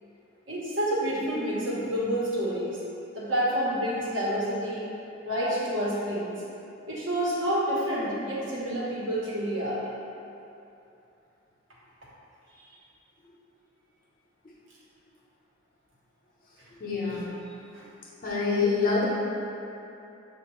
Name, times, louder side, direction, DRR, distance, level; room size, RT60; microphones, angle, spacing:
voice 1, 0.5-2.8 3.1-4.9 5.2-6.3 6.9-9.8 12.6-12.7 17.0-17.2 17.7-17.9, equal, 75° right, -7 dB, 1.1 m, -28 dB
voice 2, 16.8-17.3 18.2-19.0, left 4 dB, 45° left, -5 dB, 0.8 m, -26 dB
6.5 x 2.5 x 3.1 m, 2.7 s
head